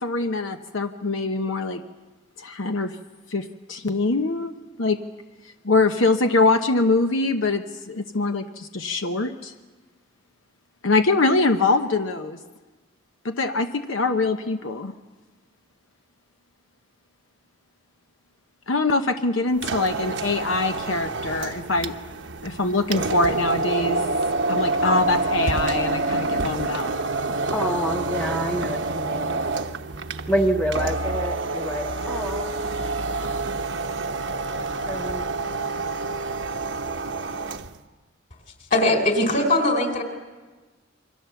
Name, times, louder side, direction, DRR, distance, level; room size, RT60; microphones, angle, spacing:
voice 1, 0.0-1.8 2.4-3.0 3.3-4.5 4.8-5.0 5.6-9.5 10.8-12.4 13.2-14.9 18.7-21.9 22.4-24.0 24.5-26.9, left 3 dB, 80° left, 6 dB, 0.9 m, -23 dB
sound 1, 19.5-37.8, right 3 dB, 65° right, 1.0 m, -27 dB
voice 2, 27.5-29.4 30.3-32.5 34.9-35.3, equal, 5° left, 3 dB, 0.9 m, -27 dB
voice 3, 38.7-40.0, left 1 dB, 40° left, 5 dB, 4.0 m, -20 dB
28.5 x 24.0 x 7.0 m, 1.3 s
head